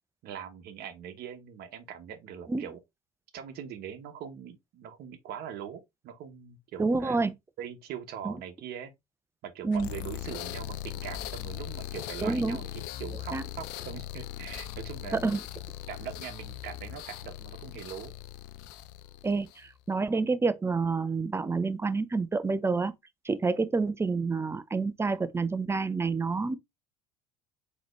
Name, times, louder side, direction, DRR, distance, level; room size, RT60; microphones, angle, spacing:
voice 1, 0.2-2.8 3.3-7.2 7.6-8.9 9.4-12.7 13.0-15.2 15.9-18.1, right 9 dB, 55° right, 1.0 m, -42 dB
voice 2, 6.8-7.3 8.2-8.3 9.6-9.9 12.2-12.6 13.3-13.4 15.1-15.4 19.2-22.9 23.3-26.6, right 4 dB, 15° right, 0.5 m, -28 dB
sound 1, 9.7-19.7, left 12 dB, 65° left, 0.5 m, -40 dB
4.0 x 3.0 x 3.0 m
hypercardioid pair, 70°, 19 cm